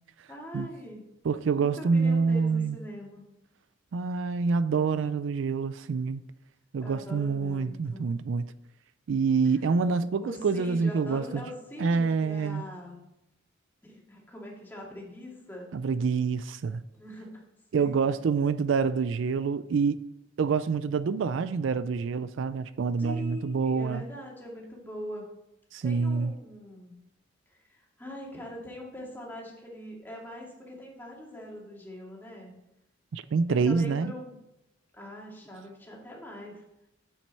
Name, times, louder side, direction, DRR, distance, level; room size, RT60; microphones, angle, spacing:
voice 1, 0.3-1.0 1.5-3.3 6.8-8.1 9.4-9.6 10.2-13.0 13.8-15.7 16.9-17.3 17.8-18.2 23.0-25.3 25.8-26.9 27.5-32.5 33.5-34.4 34.9-36.6, equal, 10° left, 2.3 m, -42 dB
voice 2, 1.2-2.8 3.9-6.2 6.7-8.5 9.1-11.4 11.8-12.6 15.7-16.8 17.7-20.1 20.4-24.0 25.7-26.3 33.1-34.1, right 5 dB, 75° right, 0.4 m, -27 dB
9.2 x 7.6 x 4.2 m
head